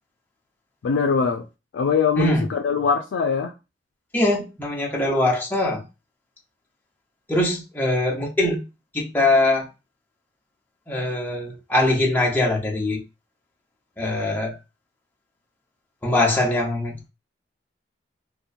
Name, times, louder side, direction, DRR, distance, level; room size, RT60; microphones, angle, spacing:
voice 1, 0.8-1.4 1.7-3.5, left 6 dB, 80° left, 0.3 m, -22 dB
voice 2, 2.2-2.5 4.1-5.8 7.3-8.6 8.9-9.6 10.9-13.0 14.0-14.6 16.0-17.1, left 2 dB, 10° left, 0.7 m, -22 dB
2.8 x 2.2 x 2.5 m
head